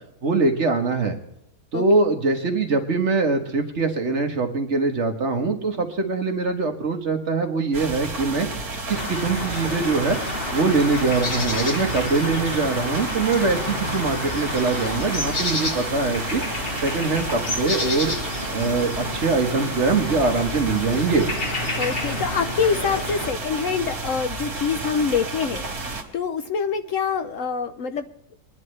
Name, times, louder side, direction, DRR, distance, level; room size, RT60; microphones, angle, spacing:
voice 1, 0.2-1.2 1.7-8.5 8.9-10.2 10.5-16.4 16.8-18.1 18.5-21.3, right 3 dB, 50° right, 5 dB, 1.5 m, -23 dB
sound 1, 7.7-26.0, right 2 dB, 70° right, 2.5 m, -31 dB
sound 2, 8.9-23.3, left 2 dB, 40° left, 1.5 m, -30 dB
voice 2, 21.8-28.1, left 6 dB, 65° left, 9 dB, 0.9 m, -25 dB
22.0 x 10.5 x 3.2 m, 0.79 s
omnidirectional pair, 1.7 m